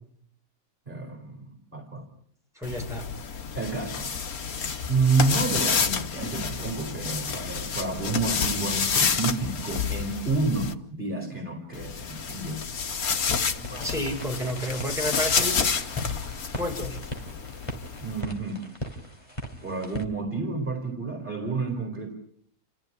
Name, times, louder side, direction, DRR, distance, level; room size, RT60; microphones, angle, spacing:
voice 1, 0.9-2.1 3.5-4.4 4.9-12.8 18.0-18.7 19.6-22.1, right 3 dB, 35° right, 3 dB, 4.5 m, -29 dB
sound 1, 2.6-10.7 11.7-18.2, left 6 dB, 90° left, 1.9 m, -29 dB
voice 2, 2.6-3.0 13.8-15.6 16.6-17.0, equal, ahead, -1 dB, 6.9 m, -30 dB
sound 2, 13.5-20.0, right 1 dB, 20° left, 3.4 m, -39 dB
30.0 x 14.5 x 9.9 m, 0.65 s
omnidirectional pair, 1.5 m